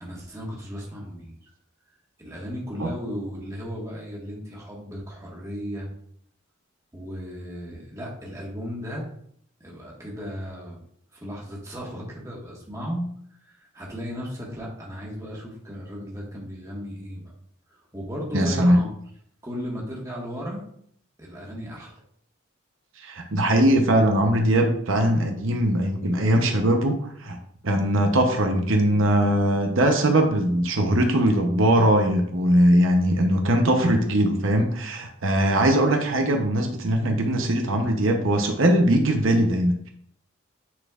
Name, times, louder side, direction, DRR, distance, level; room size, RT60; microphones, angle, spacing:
voice 1, 0.0-1.5 2.2-5.9 6.9-9.1 9.6-10.8 11.1-13.0 13.4-17.3 17.7-18.9 19.4-20.6 21.2-22.0, equal, 15° right, -3 dB, 1.5 m, -35 dB
voice 2, 18.3-18.8 23.0-27.4 27.6-39.9, right 1 dB, 70° right, 3 dB, 0.8 m, -21 dB
9.5 x 4.2 x 2.4 m, 0.67 s
head